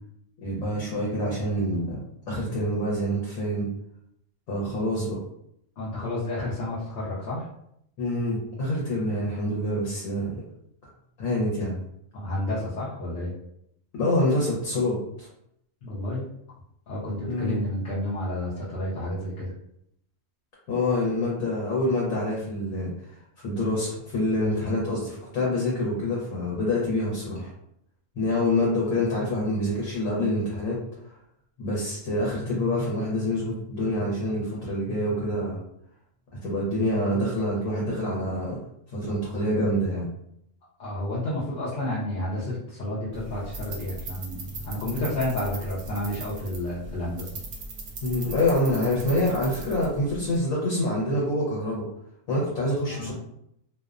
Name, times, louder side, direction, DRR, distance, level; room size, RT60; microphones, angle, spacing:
voice 1, 0.4-3.7 4.5-5.2 8.0-10.4 11.2-11.8 14.0-15.3 17.3-17.6 20.7-22.9 23.4-27.5 28.2-30.8 31.6-35.6 36.4-38.6 38.9-40.1 48.0-51.8 52.3-53.1, left 1 dB, 80° left, -4 dB, 1.1 m, -26 dB
voice 2, 5.8-7.4 12.1-13.3 15.8-16.2 16.9-19.5 40.8-47.3 52.9-53.1, left 1 dB, 60° left, -8 dB, 0.7 m, -30 dB
sound 1, 43.1-50.4, right 2 dB, 70° right, 0.9 m, -39 dB
2.5 x 2.0 x 2.4 m, 0.76 s
omnidirectional pair, 1.4 m